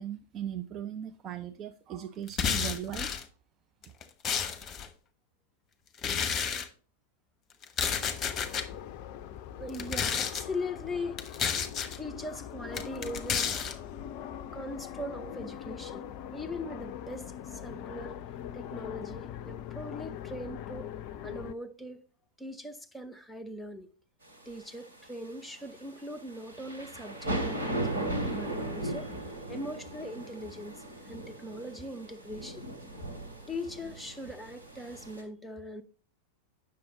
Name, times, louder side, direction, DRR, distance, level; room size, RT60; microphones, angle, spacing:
voice 1, 0.0-3.1, right 10 dB, 30° right, 0.5 m, -38 dB
sound 1, 2.3-3.2 3.8-4.9 6.0-6.7 7.6-8.7 9.7-10.4 11.2-12.0 12.7-13.7, left 7 dB, 25° left, 1.1 m, -31 dB
sound 2, 7.8-21.5, left 10 dB, 45° left, 0.5 m, -42 dB
voice 2, 9.6-11.4 11.9-13.6 14.5-16.0 16.3-18.2 18.5-20.9 21.2-22.0 22.4-23.9 24.5-27.8 28.3-29.1 29.5-32.6 33.5-35.8, left 1 dB, 5° left, 0.8 m, -40 dB
sound 3, 24.3-35.2, right 1 dB, 75° right, 2.8 m, -37 dB
9.3 x 6.5 x 3.8 m
figure-of-eight pair, 90°, 0 cm